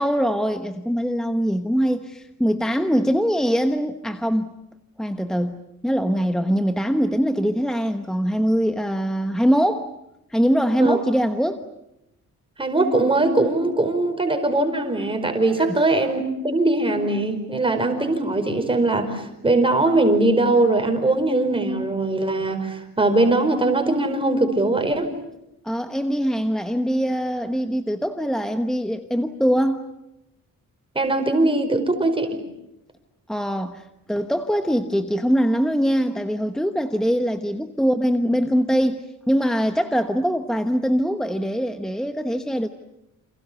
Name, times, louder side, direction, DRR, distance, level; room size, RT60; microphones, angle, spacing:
voice 1, 0.0-4.5 5.0-9.9 10.3-11.6 15.6-15.8 25.6-29.8 33.3-42.7, equal, ahead, 7 dB, 1.1 m, -22 dB
voice 2, 12.6-25.1 30.9-32.3, right 2 dB, 15° right, 6 dB, 5.0 m, -21 dB
29.5 x 28.0 x 7.0 m, 0.86 s
wide cardioid pair, 150°, 34 cm